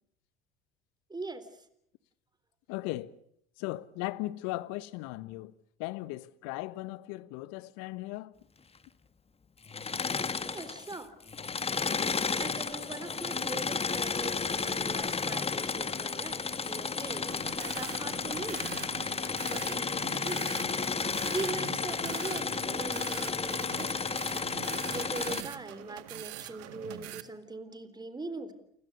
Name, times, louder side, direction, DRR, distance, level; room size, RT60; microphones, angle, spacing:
voice 1, 1.1-1.5 10.4-11.1 12.4-18.8 19.4-20.5 21.0-23.9 24.9-28.5, right 3 dB, 15° right, 3.7 m, -41 dB
voice 2, 2.7-3.1 3.6-5.5 5.8-8.3, left 18 dB, 60° left, 1.3 m, -37 dB
Engine / Mechanisms, 9.6-11.0 11.3-25.4, left 5 dB, 20° left, 1.6 m, -32 dB
sound 1, 17.3-27.2, right 16 dB, 55° right, 1.8 m, -44 dB
29.5 x 22.0 x 6.8 m
hypercardioid pair, 70°, 30 cm